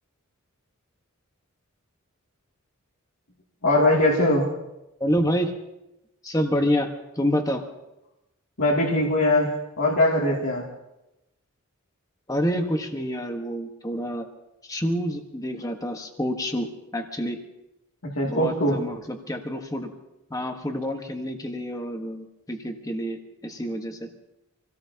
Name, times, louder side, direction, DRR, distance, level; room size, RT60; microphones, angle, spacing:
voice 1, 3.6-4.5 8.6-10.6 18.1-18.8, left 1 dB, 70° left, -5 dB, 2.7 m, -21 dB
voice 2, 5.0-5.5 6.2-7.7 12.3-14.3 14.6-16.7 16.9-17.4 18.2-19.9 20.3-24.1, equal, 15° left, 4 dB, 1.4 m, -28 dB
27.0 x 17.5 x 2.9 m, 0.93 s
head